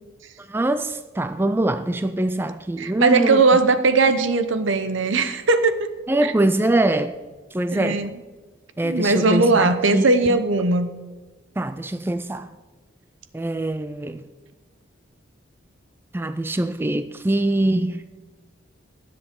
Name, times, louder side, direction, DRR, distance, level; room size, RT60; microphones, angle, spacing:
voice 1, 0.4-3.4 6.1-7.2 7.5-8.1 8.8-10.4 11.6-12.5 13.3-14.2 16.1-18.1, right 1 dB, 10° right, 0.3 m, -23 dB
voice 2, 2.8-5.9 7.7-8.1 8.8-10.9, right 3 dB, 80° right, 0.8 m, -19 dB
19.0 x 7.8 x 3.7 m
head